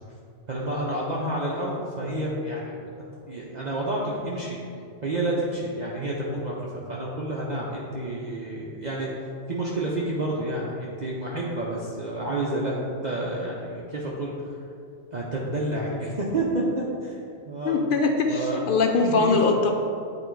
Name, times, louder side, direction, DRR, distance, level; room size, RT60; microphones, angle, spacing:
voice 1, 0.5-2.7 3.3-4.6 5.0-9.1 9.5-14.6 15.1-17.2 17.5-17.8 18.3-18.6 19.0-19.4, right 1 dB, 45° right, -4 dB, 0.7 m, -29 dB
voice 2, 17.6-19.7, left 4 dB, 60° left, 4 dB, 0.6 m, -22 dB
8.7 x 3.0 x 4.5 m, 2.5 s
omnidirectional pair, 1.2 m